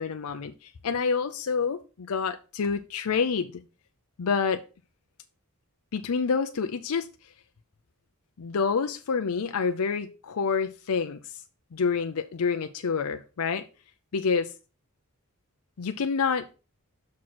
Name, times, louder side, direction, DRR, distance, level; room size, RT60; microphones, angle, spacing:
voice 1, 0.0-3.6 4.2-4.6 5.9-7.1 8.4-11.4 11.7-13.6 14.1-14.5 15.8-16.5, left 5 dB, 85° left, 0.5 m, -28 dB
6.2 x 4.3 x 6.0 m
head